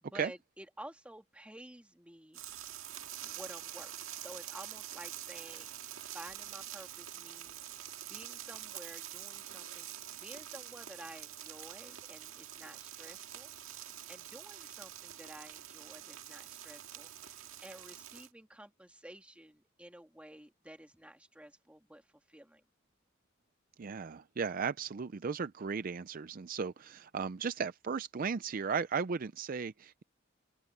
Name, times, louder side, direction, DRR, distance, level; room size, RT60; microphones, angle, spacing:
voice 1, 0.0-2.4 3.2-22.6, right 1 dB, 5° right, 2.0 m, -52 dB
sound 1, 2.3-18.3, right 12 dB, 85° right, 1.9 m, -46 dB
voice 2, 23.8-30.0, right 5 dB, 45° right, 0.4 m, -36 dB
open air
head